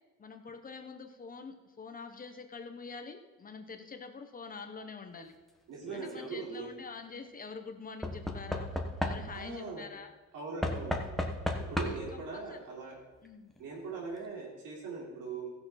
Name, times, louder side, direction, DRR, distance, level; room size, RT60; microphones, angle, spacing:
voice 1, 0.2-5.4 5.9-8.7 9.0-10.1 11.8-12.6 13.2-13.5, left 4 dB, 25° left, 6 dB, 1.0 m, -46 dB
voice 2, 5.7-6.7 9.3-9.9 10.3-11.1 11.6-13.0 13.6-15.5, right 4 dB, 80° right, -2 dB, 3.7 m, -40 dB
Knock / Wood, 5.8-6.3 8.0-9.6 10.6-12.2 13.3-13.4 13.6-13.7, left 1 dB, ahead, 1.1 m, -35 dB
15.5 x 6.9 x 5.7 m, 1.2 s
cardioid pair, 145°, 31 cm